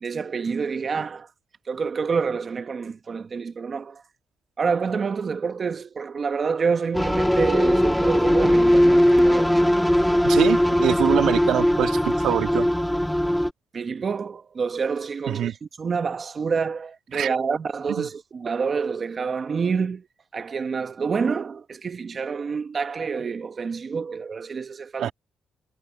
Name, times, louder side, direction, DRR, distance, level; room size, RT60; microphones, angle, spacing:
voice 1, 0.0-1.3 1.6-4.0 4.6-9.6 13.7-20.1 20.3-25.1, right 5 dB, 40° right, 1.1 m, -27 dB
sound 1, 6.9-13.5, equal, 5° left, 1.5 m, -19 dB
voice 2, 10.2-12.7 15.3-15.5 17.1-17.3 18.0-18.1 25.0-25.1, right 10 dB, 75° right, 1.6 m, -24 dB
cardioid pair, 90°, 0 cm